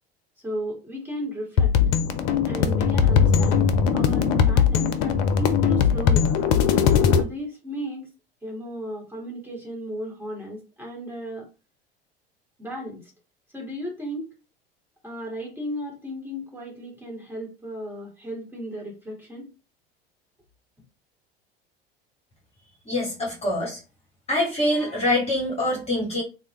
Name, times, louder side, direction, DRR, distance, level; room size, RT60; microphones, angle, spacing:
voice 1, 0.4-1.7 2.4-6.3 7.2-8.1 8.4-11.5 12.6-13.1 13.5-14.3 15.0-19.5, equal, 5° right, -3 dB, 1.6 m, -35 dB
sound 1, 1.6-7.2, left 7 dB, 50° left, 0.5 m, -20 dB
voice 2, 22.8-23.8 24.3-26.2, left 1 dB, 20° left, -3 dB, 1.4 m, -24 dB
3.3 x 2.1 x 3.0 m, 0.31 s
figure-of-eight pair, 75°, 30 cm